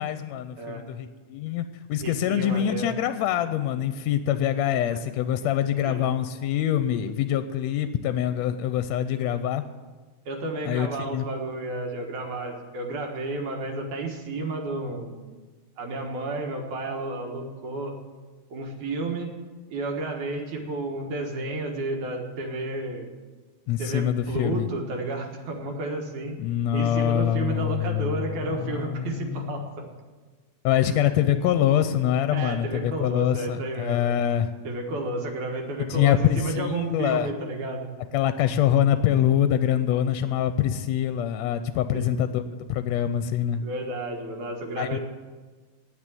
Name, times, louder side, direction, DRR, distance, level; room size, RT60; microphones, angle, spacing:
voice 1, 0.0-9.6 10.7-11.3 23.7-24.7 26.4-29.7 30.6-34.5 35.9-37.3 38.1-43.6 44.8-45.0, left 10 dB, 80° left, 11 dB, 1.7 m, -25 dB
voice 2, 2.0-2.9 4.9-5.0 5.8-6.1 10.3-15.2 15.8-17.9 18.5-19.3 19.7-23.1 23.8-26.4 26.7-29.9 32.3-34.2 34.6-37.9 41.9-42.1 43.6-45.0, right 2 dB, 80° right, 2 dB, 2.9 m, -31 dB
9.7 x 8.2 x 9.1 m, 1.4 s
omnidirectional pair, 3.4 m